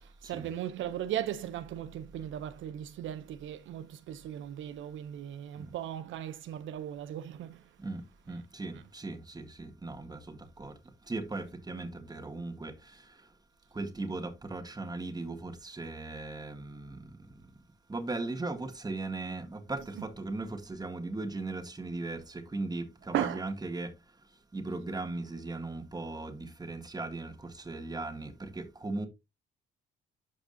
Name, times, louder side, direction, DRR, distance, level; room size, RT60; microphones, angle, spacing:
voice 1, 0.2-7.6 23.1-23.4, right 11 dB, 75° right, 0.7 m, -37 dB
voice 2, 8.3-10.7 11.1-12.7 13.8-17.0 17.9-23.9 24.5-27.3 27.7-29.1, right 2 dB, 20° right, 1.8 m, -38 dB
12.0 x 5.0 x 2.7 m
cardioid pair, 90°, 20 cm